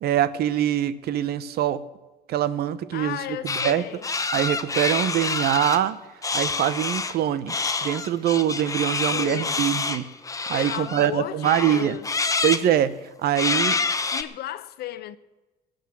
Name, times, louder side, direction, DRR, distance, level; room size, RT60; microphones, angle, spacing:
voice 1, 0.0-1.8 2.3-3.2 3.6-3.8 4.3-6.0 6.3-7.5 7.8-10.1 10.5-11.9 12.4-13.8, right 11 dB, 70° right, 0.9 m, -23 dB
voice 2, 2.9-4.1 8.9-9.8 10.5-12.1 14.0-15.2, left 13 dB, 70° left, 0.9 m, -35 dB
sound 1, 3.5-3.8 4.0-5.8 6.2-7.1 7.5-11.1 11.4-12.6 13.3-14.2, left 4 dB, 20° left, 0.9 m, -27 dB
17.0 x 6.5 x 8.8 m
cardioid pair, 110°, 17 cm